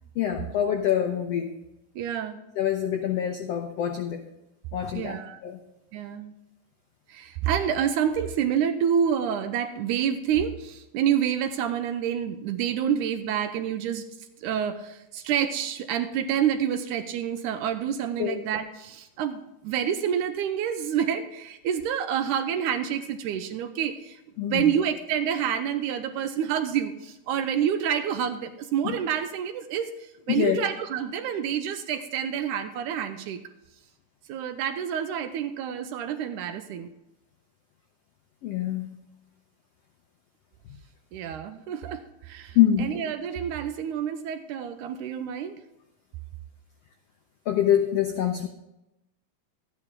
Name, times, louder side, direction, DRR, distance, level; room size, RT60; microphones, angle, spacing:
voice 1, 0.2-1.5 2.6-4.2 4.7-5.6 18.2-18.4 24.4-24.7 28.8-28.9 30.3-30.6 38.4-38.9 42.5-42.9 47.5-48.5, left 10 dB, 85° left, 4 dB, 1.4 m, -25 dB
voice 2, 2.0-2.4 4.9-5.4 5.9-6.3 7.1-14.0 14.4-33.4 34.3-36.9 41.1-45.6, right 8 dB, 80° right, 8 dB, 1.9 m, -28 dB
13.5 x 9.8 x 3.7 m, 0.91 s
omnidirectional pair, 3.9 m